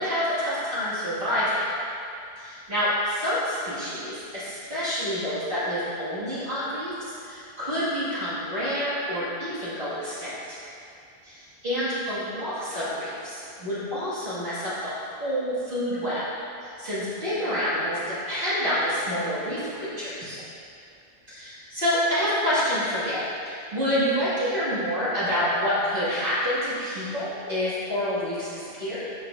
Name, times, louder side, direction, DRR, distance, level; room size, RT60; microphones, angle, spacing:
voice 1, 0.0-1.6 2.4-10.6 11.2-14.9 15.2-16.3 16.6-20.4 21.3-29.0, equal, 50° right, -13 dB, 2.3 m, -28 dB
12.5 x 6.2 x 2.6 m, 2.5 s
omnidirectional pair, 1.2 m